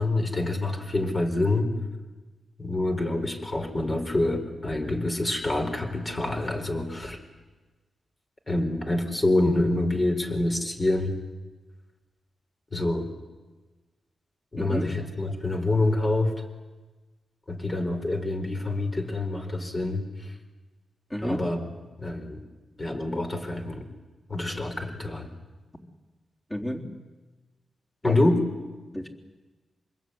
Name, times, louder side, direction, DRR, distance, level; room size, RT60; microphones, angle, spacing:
voice 1, 0.0-1.7 2.6-7.2 8.5-11.1 12.7-13.1 14.5-16.4 17.5-20.3 21.2-21.7 22.0-22.4 22.8-23.9 24.3-25.3 28.0-28.4, left 2 dB, 30° left, 4 dB, 4.3 m, -26 dB
voice 2, 21.1-21.5 26.5-26.9 28.0-28.3 28.9-29.1, equal, 15° left, -1 dB, 3.8 m, -31 dB
26.0 x 21.5 x 9.6 m, 1.2 s
cardioid pair, 90°, 0 cm